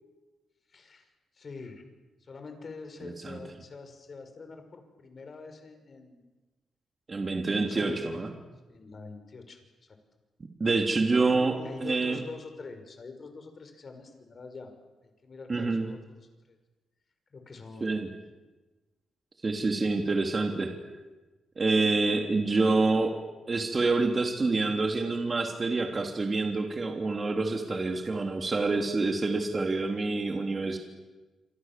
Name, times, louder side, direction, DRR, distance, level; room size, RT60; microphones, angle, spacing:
voice 1, 0.7-1.1 1.3-1.8 2.2-6.2 7.4-8.2 8.7-10.0 11.3-14.7 15.0-16.0 16.5-16.6 17.3-17.9, left 4 dB, 45° left, 6 dB, 5.8 m, -45 dB
voice 2, 3.0-3.4 7.1-8.3 10.6-11.6 11.8-12.2 15.5-15.9 17.8-18.1 19.4-20.7 21.6-23.2 23.5-30.8, right 3 dB, 35° right, 3 dB, 3.2 m, -27 dB
27.5 x 26.0 x 7.6 m, 1.2 s
cardioid pair, 90°, 0 cm